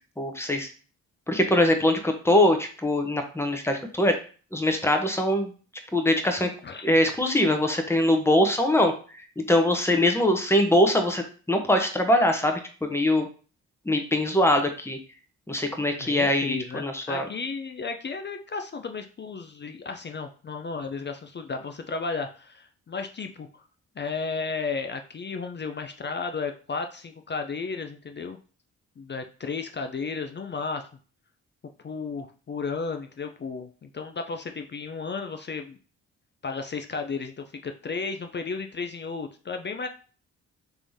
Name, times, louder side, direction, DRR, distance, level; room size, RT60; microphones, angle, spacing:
voice 1, 0.2-0.7 1.3-4.2 4.5-5.5 5.9-6.5 6.8-13.3 13.9-15.0 15.5-17.3, left 1 dB, 5° left, 5 dB, 0.8 m, -23 dB
voice 2, 16.0-23.6 24.0-28.4 29.0-30.9 31.8-35.8 36.4-39.9, left 4 dB, 30° left, 6 dB, 0.4 m, -33 dB
3.3 x 3.3 x 2.7 m, 0.38 s
hypercardioid pair, 45°, 39 cm